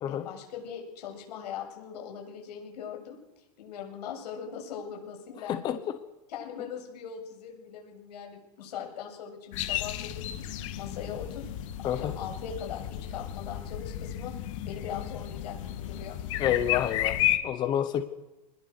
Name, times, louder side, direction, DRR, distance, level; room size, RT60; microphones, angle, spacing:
voice 1, 0.1-3.2 3.6-5.9 6.3-11.5 11.9-14.3 14.7-16.2, left 7 dB, 85° left, 2 dB, 7.8 m, -40 dB
voice 2, 5.5-5.8 11.8-12.1 16.4-18.0, left 10 dB, 20° left, 10 dB, 0.9 m, -29 dB
sound 1, 9.5-17.4, left 12 dB, 50° left, 1.8 m, -33 dB
24.0 x 20.5 x 6.7 m, 1.0 s
supercardioid pair, 170°, 20 cm